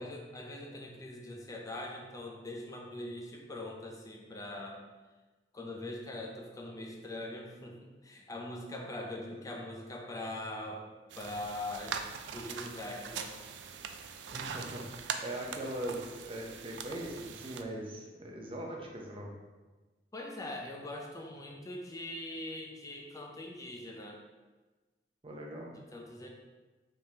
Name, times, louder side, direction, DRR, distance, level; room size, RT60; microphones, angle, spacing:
voice 1, 0.0-4.8 5.5-10.8 11.2-12.0 12.3-13.3 20.1-24.2 25.9-26.3, left 1 dB, 20° left, 0 dB, 0.6 m, -42 dB
sound 1, 11.1-17.6, right 6 dB, 90° right, 0.4 m, -42 dB
voice 2, 14.3-19.3 25.2-25.8, right 1 dB, 30° right, -1 dB, 0.7 m, -41 dB
4.9 x 3.6 x 2.8 m, 1.2 s
head